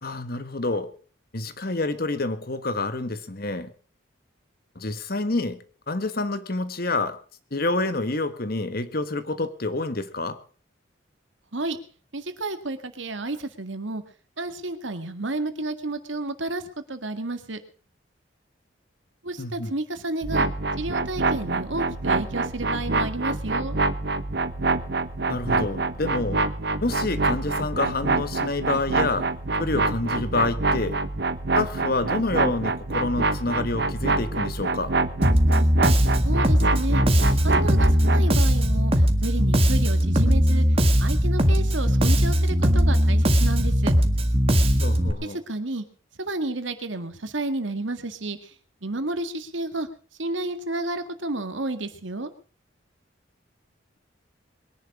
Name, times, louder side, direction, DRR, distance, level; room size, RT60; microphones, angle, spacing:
voice 1, 0.0-0.9 1.3-3.7 4.7-7.2 7.5-10.4 19.4-19.7 25.3-26.5 26.8-29.3 29.6-31.0 31.5-34.9 44.8-45.4, left 2 dB, 50° left, 12 dB, 1.4 m, -28 dB
voice 2, 12.1-14.0 14.4-16.6 16.9-17.6 19.2-20.5 20.8-23.8 36.2-37.0 37.4-40.7 41.0-43.9 45.2-45.9 46.2-48.5 48.8-49.9 50.2-52.3, right 2 dB, 75° right, 9 dB, 1.9 m, -31 dB
sound 1, 20.2-38.3, right 3 dB, 55° right, 1.0 m, -26 dB
Bass guitar, 35.2-45.1, equal, 30° right, 1.8 m, -19 dB
22.0 x 10.5 x 4.9 m, 0.41 s
head